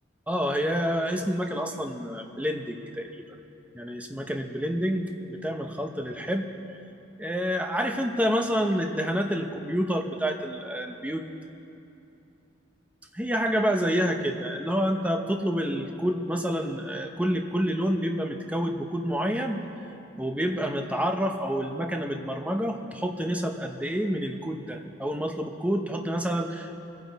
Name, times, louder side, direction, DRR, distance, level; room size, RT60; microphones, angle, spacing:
voice 1, 0.3-3.1 3.7-6.5 7.2-11.2 13.1-19.6 20.2-26.7, equal, 5° right, 4 dB, 0.7 m, -28 dB
24.0 x 9.3 x 4.0 m, 2.8 s
head